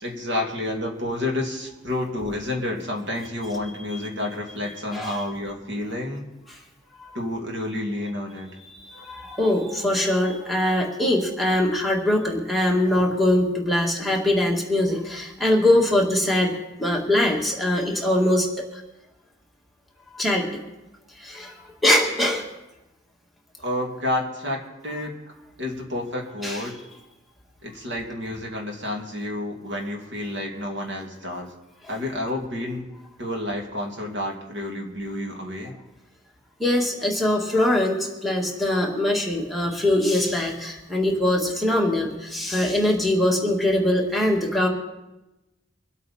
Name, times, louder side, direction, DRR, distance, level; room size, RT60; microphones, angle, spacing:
voice 1, 0.0-6.3 7.1-8.6 23.6-25.1 25.6-26.8 27.6-31.5 31.9-32.9 33.2-35.8 37.0-37.1 39.0-39.1, left 1 dB, 70° right, 0 dB, 2.6 m, -30 dB
voice 2, 8.9-16.5 16.8-18.5 20.2-20.4 21.2-21.5 21.8-22.4 26.4-26.6 36.6-44.7, left 1 dB, ahead, -1 dB, 1.9 m, -22 dB
25.0 x 8.5 x 4.3 m, 1.0 s
head